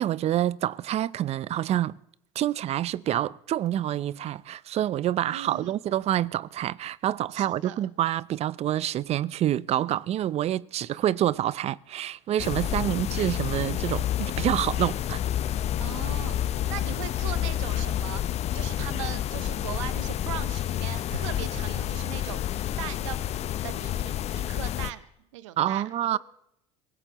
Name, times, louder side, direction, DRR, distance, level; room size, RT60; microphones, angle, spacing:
voice 1, 0.0-2.0 2.4-15.2 25.6-26.2, right 12 dB, 40° right, 0.5 m, -27 dB
voice 2, 5.3-5.7 7.3-7.8 9.8-9.9 12.7-13.1 15.8-16.4 16.7-22.4 22.8-23.3 23.6-25.0 25.3-26.2, right 13 dB, 85° right, 0.7 m, -39 dB
sound 1, 12.4-24.9, left 11 dB, 45° left, 0.6 m, -29 dB
24.0 x 16.0 x 2.9 m
hypercardioid pair, 85°, 16 cm